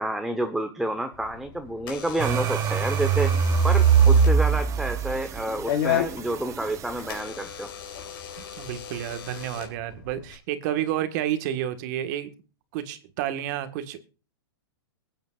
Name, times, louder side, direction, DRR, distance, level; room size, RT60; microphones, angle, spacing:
voice 1, 0.0-3.3 3.6-7.7, right 1 dB, ahead, 6 dB, 1.0 m, -29 dB
Door / Alarm, 1.1-10.4, left 10 dB, 60° left, 4.2 m, -35 dB
sound 1, 2.2-7.1, right 6 dB, 25° right, 0.9 m, -22 dB
voice 2, 8.6-12.3 12.7-14.0, right 11 dB, 45° right, 10 dB, 1.6 m, -30 dB
22.0 x 9.2 x 2.5 m, 0.34 s
hypercardioid pair, 140°, 13 cm